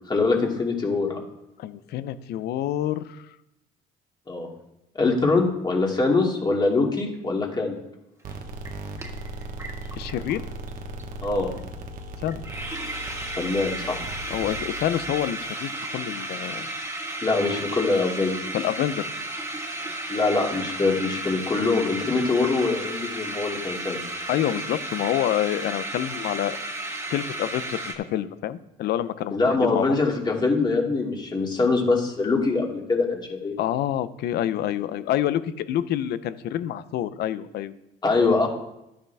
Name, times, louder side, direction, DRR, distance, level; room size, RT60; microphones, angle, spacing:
voice 1, 0.1-1.2 4.3-4.5 5.0-7.8 11.2-11.5 13.4-14.1 17.2-18.4 20.1-24.0 29.3-33.6 38.0-38.5, left 3 dB, 25° left, 0 dB, 2.5 m, -23 dB
voice 2, 1.6-3.2 10.0-10.4 12.2-12.4 14.3-16.7 18.5-19.1 24.3-26.6 27.1-30.0 33.6-37.7, left 11 dB, 75° left, 14 dB, 0.7 m, -27 dB
sound 1, 8.2-15.1, right 1 dB, 55° right, 1.3 m, -38 dB
sound 2, 8.3-8.4 8.7-10.4 10.7-10.8 11.0-11.2 11.5-11.6 12.0-12.1 12.3-27.9, right 1 dB, 15° right, 1.8 m, -33 dB
12.5 x 8.9 x 3.5 m, 0.88 s
cardioid pair, 110°, 17 cm